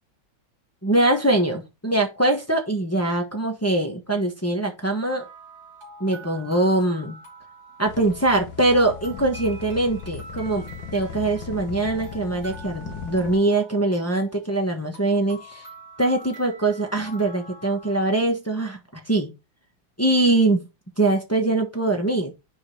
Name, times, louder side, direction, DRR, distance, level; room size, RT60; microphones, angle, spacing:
voice 1, 0.8-5.2 6.0-7.2 7.8-10.7 10.9-15.7 16.0-19.3 20.0-20.6 21.0-22.3, right 2 dB, 10° left, 2 dB, 0.7 m, -22 dB
sound 1, 5.0-18.1, right 1 dB, 35° right, 3.7 m, -45 dB
sound 2, 7.9-13.4, left 7 dB, 80° left, 1.6 m, -38 dB
6.0 x 4.7 x 4.8 m, 0.25 s
omnidirectional pair, 2.1 m